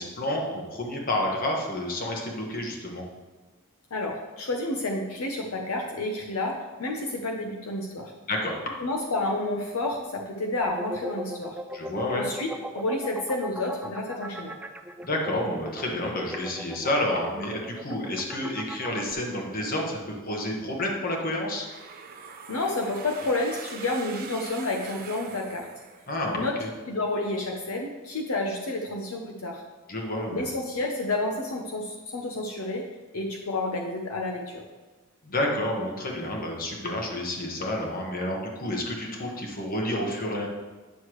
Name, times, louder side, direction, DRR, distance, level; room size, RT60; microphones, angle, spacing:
voice 1, 0.0-3.0 8.3-8.6 11.7-12.2 15.0-21.7 26.1-26.7 29.9-30.4 35.2-40.5, left 1 dB, 40° left, 0 dB, 1.3 m, -29 dB
voice 2, 3.9-8.1 8.8-11.6 12.1-14.6 22.5-25.7 26.4-26.6 26.9-29.6 30.3-32.9 33.1-34.6, left 2 dB, 75° left, 1 dB, 0.8 m, -30 dB
sound 1, 10.6-19.1, equal, 10° right, 0.3 m, -38 dB
sound 2, 21.6-26.5, right 5 dB, 45° right, 0.7 m, -43 dB
9.3 x 6.5 x 3.1 m, 1.3 s
head